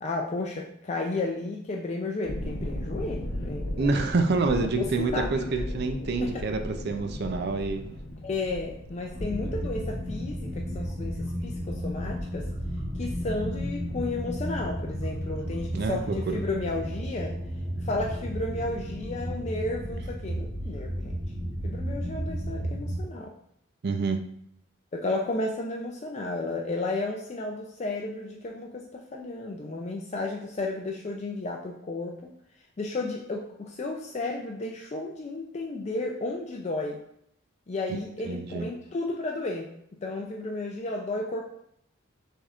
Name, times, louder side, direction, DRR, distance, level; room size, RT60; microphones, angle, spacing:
voice 1, 0.0-4.0 4.8-5.7 6.2-6.5 8.2-12.5 13.0-17.4 17.8-21.2 21.6-23.3 24.9-32.2 32.8-37.0 37.7-39.7 40.0-41.4, left 2 dB, 35° left, 1 dB, 0.4 m, -33 dB
sound 1, 2.2-14.8 15.1-15.5, left 1 dB, 60° left, 0.7 m, -38 dB
voice 2, 3.8-7.8 9.4-9.5 15.7-16.4 23.8-24.2 37.9-38.0 38.2-38.6, right 3 dB, 50° right, 6 dB, 0.4 m, -27 dB
sound 2, 9.1-23.0, equal, 15° right, 1.2 m, -33 dB
6.3 x 3.5 x 2.4 m, 0.70 s
head